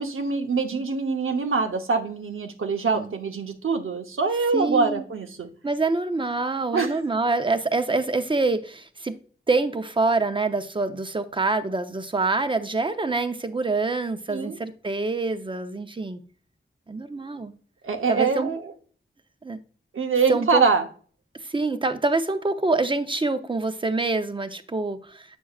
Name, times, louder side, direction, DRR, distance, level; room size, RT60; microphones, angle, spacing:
voice 1, 0.0-5.5 6.7-7.0 14.3-14.6 17.8-18.7 19.9-20.9, right 4 dB, 85° right, 0.9 m, -24 dB
voice 2, 4.5-5.0 5.6-9.2 9.5-16.2 16.9-17.5 18.1-18.5 19.4-19.6 20.3-20.6 21.4-25.4, right 3 dB, 25° right, 0.6 m, -26 dB
8.4 x 6.2 x 2.4 m
wide cardioid pair, 100°, 21 cm